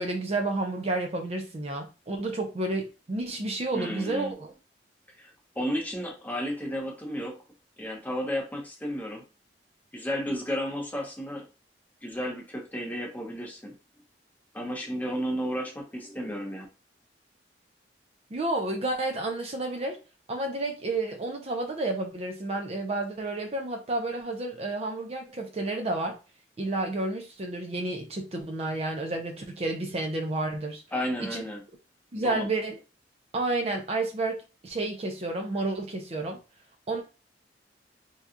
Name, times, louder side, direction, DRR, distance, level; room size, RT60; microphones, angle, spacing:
voice 1, 0.0-4.5 18.3-20.0 20.3-26.2 26.6-30.8 31.3-31.4 32.1-32.7 33.3-36.4 36.9-37.0, right 2 dB, 35° right, 0.5 m, -30 dB
voice 2, 3.7-4.3 5.2-7.4 7.8-9.2 9.9-11.5 12.0-13.7 14.5-16.7 30.9-31.6 32.1-32.5, equal, 10° left, 0.8 m, -33 dB
2.8 x 2.3 x 3.6 m
head